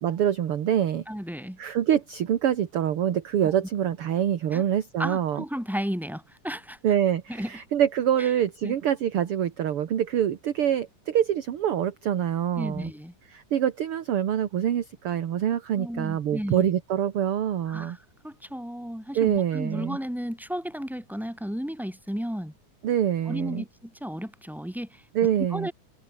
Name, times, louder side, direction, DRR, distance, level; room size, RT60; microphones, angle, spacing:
voice 1, 0.0-1.0 1.6-5.4 6.8-12.9 13.3-18.0 19.1-20.0 22.8-23.6 25.1-25.7, right 10 dB, 55° right, 2.0 m, -25 dB
voice 2, 1.1-1.6 4.5-4.6 5.0-6.8 7.3-7.5 8.2-8.3 8.6-8.7 12.6-13.1 15.8-16.7 17.7-18.0 18.2-22.5 23.3-25.0 25.5-25.7, equal, ahead, 7.0 m, -33 dB
omnidirectional pair, 3.6 m